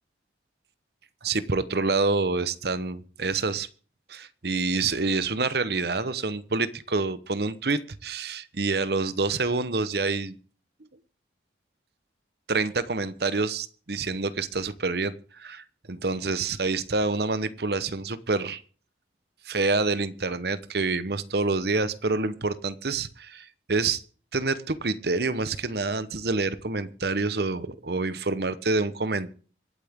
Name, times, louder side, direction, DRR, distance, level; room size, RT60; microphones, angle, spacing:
voice 1, 1.2-3.7 4.1-10.4 12.5-18.6 19.4-24.0 24.3-29.3, right 3 dB, 60° right, 14 dB, 0.9 m, -27 dB
25.0 x 8.6 x 3.6 m, 0.40 s
head